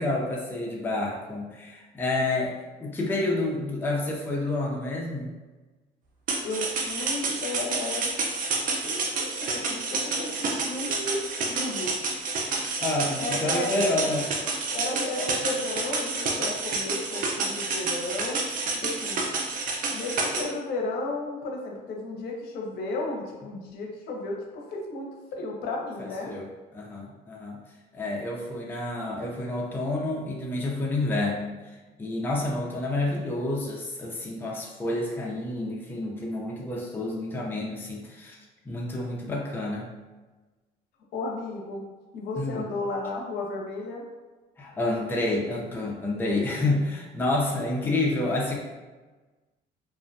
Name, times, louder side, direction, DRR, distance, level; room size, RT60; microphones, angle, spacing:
voice 1, 0.0-5.3 12.8-14.3 26.0-27.6 27.9-38.4 38.6-39.9 42.4-42.7 44.6-48.6, left 2 dB, 10° left, -3 dB, 0.5 m, -29 dB
sound 1, 6.3-20.4, right 3 dB, 55° right, 0.5 m, -29 dB
voice 2, 6.4-8.1 8.8-11.9 13.2-14.1 14.7-18.4 18.7-19.2 19.9-26.3 41.1-41.8 42.1-44.1, left 2 dB, 75° left, -1 dB, 0.6 m, -33 dB
2.5 x 2.1 x 2.6 m, 1.2 s
cardioid pair, 110°, 17 cm